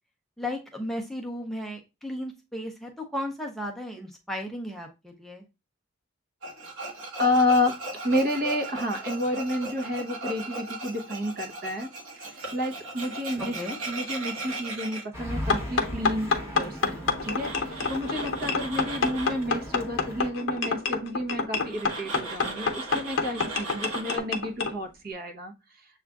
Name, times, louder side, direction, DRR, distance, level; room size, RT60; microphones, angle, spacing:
voice 1, 0.4-5.4 13.5-13.8, left 1 dB, ahead, 1 dB, 0.4 m, -35 dB
Tools, 6.4-15.0 17.2-19.4 21.7-24.2, right 2 dB, 90° right, 1.3 m, -37 dB
voice 2, 7.2-7.8 8.0-11.9 12.2-13.6 13.9-25.5, left 1 dB, 45° right, 4 dB, 0.8 m, -30 dB
sound 1, 15.1-20.3, equal, 15° right, 0.8 m, -38 dB
sound 2, 15.5-24.7, left 4 dB, 70° left, 0.7 m, -28 dB
7.0 x 2.4 x 2.2 m, 0.26 s
head